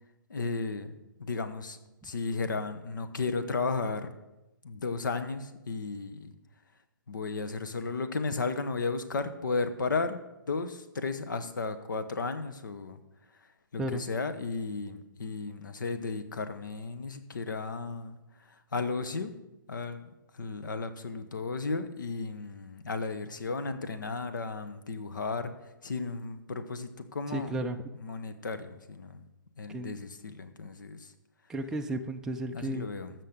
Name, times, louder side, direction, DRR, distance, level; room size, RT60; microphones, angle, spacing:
voice 1, 0.3-0.9 1.2-1.8 2.0-4.1 4.6-6.3 7.1-10.2 10.5-13.0 13.7-18.2 18.7-19.3 19.7-20.1 20.3-25.5 25.8-27.6 28.0-29.2 29.6-31.1 32.5-33.1, left 4 dB, 65° left, 10 dB, 1.1 m, -34 dB
voice 2, 27.3-27.8 29.7-30.0 31.5-32.9, right 1 dB, 5° right, 3 dB, 0.4 m, -34 dB
14.5 x 6.2 x 5.2 m, 0.97 s
figure-of-eight pair, 130°, 11 cm